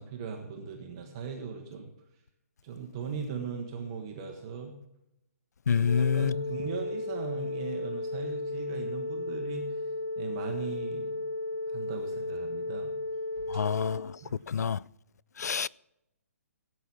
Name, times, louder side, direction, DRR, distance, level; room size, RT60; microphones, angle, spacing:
voice 1, 0.0-1.9 2.6-4.7 5.7-9.7 10.2-11.2 11.7-12.9 13.5-13.6 14.2-14.3, right 5 dB, 20° right, 1.1 m, -39 dB
voice 2, 5.7-6.3 13.5-14.0 14.5-14.8 15.4-15.7, left 7 dB, 90° left, 0.4 m, -26 dB
sound 1, 5.9-14.0, left 2 dB, 75° left, 3.3 m, -34 dB
16.0 x 8.4 x 6.0 m
hypercardioid pair, 180°, 9 cm